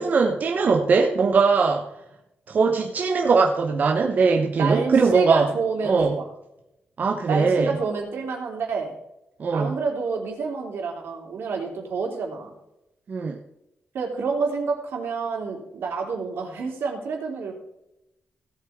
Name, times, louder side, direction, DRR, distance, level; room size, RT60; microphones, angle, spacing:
voice 1, 0.0-1.9 2.5-5.5 5.8-6.2 7.0-7.8 9.4-9.8 13.1-13.4, right 4 dB, 45° right, 2 dB, 1.0 m, -20 dB
voice 2, 4.5-6.2 7.3-8.9 9.5-12.5 13.9-17.5, right 5 dB, 80° right, 1 dB, 3.4 m, -28 dB
17.0 x 8.2 x 3.6 m, 0.87 s
wide cardioid pair, 155°, 4 cm